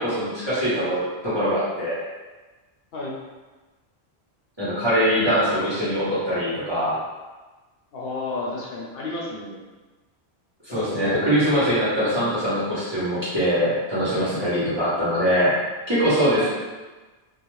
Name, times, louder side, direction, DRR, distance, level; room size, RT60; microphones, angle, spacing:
voice 1, 0.0-1.9 4.6-7.0 10.6-15.5 15.9-16.5, equal, 25° right, -12 dB, 0.9 m, -22 dB
voice 2, 7.9-9.6 10.7-11.2 16.3-16.5, left 2 dB, 70° left, -4 dB, 0.8 m, -32 dB
2.4 x 2.1 x 3.0 m, 1.2 s
omnidirectional pair, 1.1 m